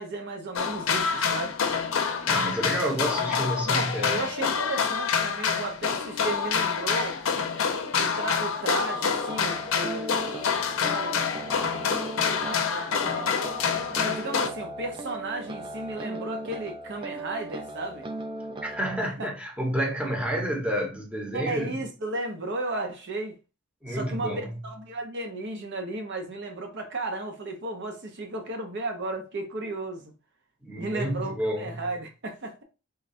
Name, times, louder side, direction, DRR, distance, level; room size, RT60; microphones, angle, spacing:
voice 1, 0.0-1.6 3.6-7.2 8.0-10.2 10.6-11.3 12.4-13.4 14.0-18.1 19.2-19.3 21.3-23.4 23.9-30.1 30.7-32.6, right 2 dB, 55° right, 0.7 m, -34 dB
sound 1, 0.5-14.5, left 6 dB, 65° left, 0.6 m, -27 dB
voice 2, 2.3-4.3 18.6-21.8 23.8-24.6 30.6-31.9, equal, 5° right, 1.0 m, -30 dB
sound 2, 9.0-19.0, right 2 dB, 25° right, 0.4 m, -38 dB
3.7 x 2.2 x 4.1 m
head